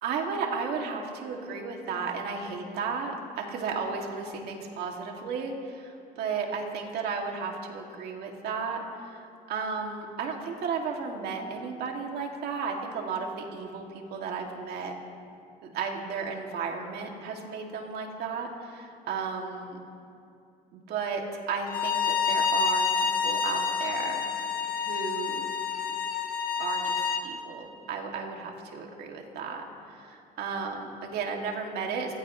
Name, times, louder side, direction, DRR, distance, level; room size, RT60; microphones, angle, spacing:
voice 1, 0.0-8.8 9.5-14.9 15.6-19.8 20.7-24.2 24.8-25.5 26.6-29.6 30.0-32.1, right 5 dB, 70° right, 1 dB, 2.5 m, -34 dB
Bowed string instrument, 21.7-27.2, left 6 dB, 60° left, 1.4 m, -28 dB
27.5 x 15.5 x 3.2 m, 2.5 s
cardioid pair, 110°, 17 cm